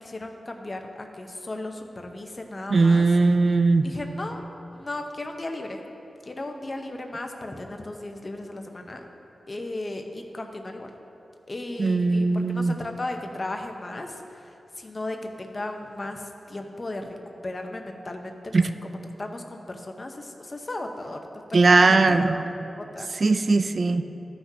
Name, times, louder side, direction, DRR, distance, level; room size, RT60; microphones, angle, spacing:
voice 1, 0.0-3.0 3.8-4.4 4.7-5.8 6.3-9.0 9.5-10.9 11.5-14.5 14.8-17.2 17.4-18.6 18.8-21.2 21.7-22.3 22.8-23.1, left 2 dB, 35° left, 4 dB, 0.8 m, -36 dB
voice 2, 2.7-3.9 11.8-12.7 18.5-18.7 21.5-22.4 23.2-24.0, right 3 dB, 50° right, 9 dB, 0.3 m, -19 dB
14.0 x 5.9 x 2.8 m, 2.8 s
wide cardioid pair, 75°, 0 cm